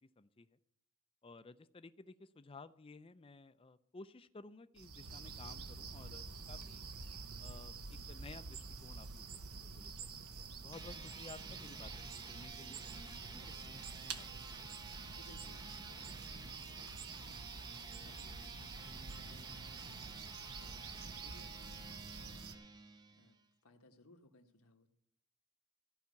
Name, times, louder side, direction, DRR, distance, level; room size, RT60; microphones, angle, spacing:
voice 1, 0.2-0.6 1.2-6.9 7.4-13.7 14.0-14.8, left 3 dB, 25° left, 13 dB, 0.4 m, -56 dB
sound 1, 4.8-22.5, right 4 dB, 85° right, 1.1 m, -48 dB
sound 2, 10.6-23.4, right 3 dB, 20° right, 0.6 m, -51 dB
voice 2, 15.1-20.1 20.6-22.7 23.1-24.9, left 2 dB, 80° left, 4 dB, 1.3 m, -65 dB
14.5 x 5.7 x 8.2 m, 0.75 s
head